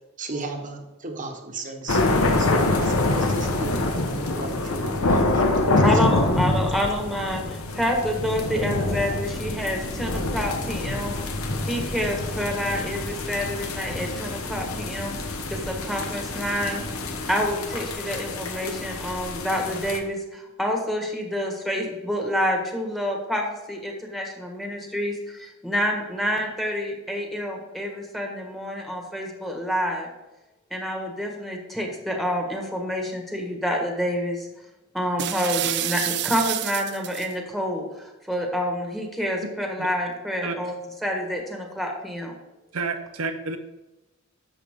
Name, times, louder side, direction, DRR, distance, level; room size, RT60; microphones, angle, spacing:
voice 1, 0.2-2.0 2.4-6.3, right 3 dB, 40° right, 4 dB, 1.3 m, -35 dB
sound 1, 1.9-20.0, left 2 dB, 85° left, 1.2 m, -26 dB
voice 2, 5.8-11.2 11.6-15.2 15.5-16.8 17.3-30.1 30.7-34.5 34.9-42.3, equal, ahead, 1 dB, 1.6 m, -28 dB
sound 2, 8.5-17.5, left 1 dB, 45° left, 1.1 m, -38 dB
sound 3, 35.2-37.3, right 13 dB, 55° right, 0.4 m, -28 dB
voice 3, 42.7-43.6, right 4 dB, 80° right, 6 dB, 0.8 m, -29 dB
11.0 x 7.4 x 3.7 m, 1.0 s
head